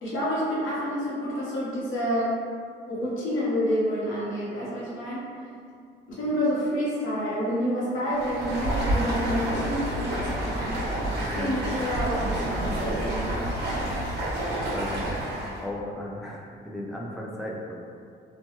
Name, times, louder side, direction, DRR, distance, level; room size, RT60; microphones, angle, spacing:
voice 1, 0.0-2.3 2.9-5.2 6.1-10.9 11.2-13.4, equal, 75° left, -7 dB, 1.0 m, -28 dB
Stream, 8.1-15.6, right 1 dB, 55° right, 1.1 m, -29 dB
voice 2, 11.2-11.6 14.3-15.1 15.6-17.8, left 1 dB, ahead, -3 dB, 0.3 m, -36 dB
2.9 x 2.1 x 2.9 m, 2.3 s
cardioid pair, 90°, 20 cm